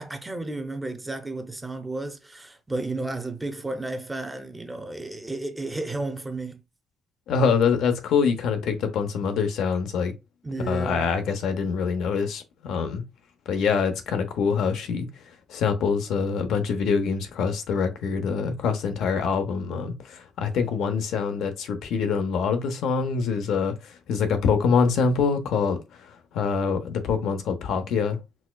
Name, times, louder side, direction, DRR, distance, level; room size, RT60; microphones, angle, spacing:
voice 1, 0.0-6.6 10.4-11.1, right 2 dB, 15° right, 0.6 m, -32 dB
voice 2, 7.3-10.1 10.6-13.0 13.5-15.1 15.5-28.2, left 5 dB, 80° left, 0.6 m, -25 dB
4.1 x 2.2 x 2.2 m
cardioid pair, 90°, 0 cm